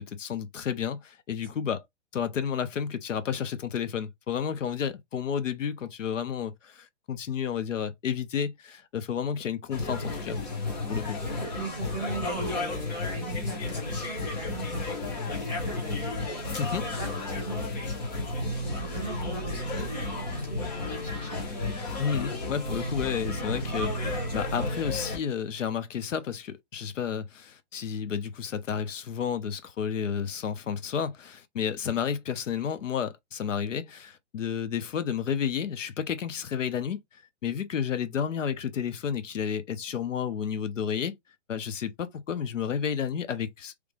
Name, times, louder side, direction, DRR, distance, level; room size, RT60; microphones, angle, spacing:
voice 1, 0.0-1.8 2.1-10.4 10.9-11.2 16.5-16.9 22.0-41.1 41.5-43.7, left 7 dB, 90° left, 0.9 m, -31 dB
sound 1, 9.7-25.2, left 2 dB, 35° left, 1.0 m, -32 dB
voice 2, 11.2-16.3 16.9-17.9 18.5-21.5, right 3 dB, 5° left, 1.0 m, -40 dB
3.3 x 2.4 x 3.3 m
hypercardioid pair, 170°, 37 cm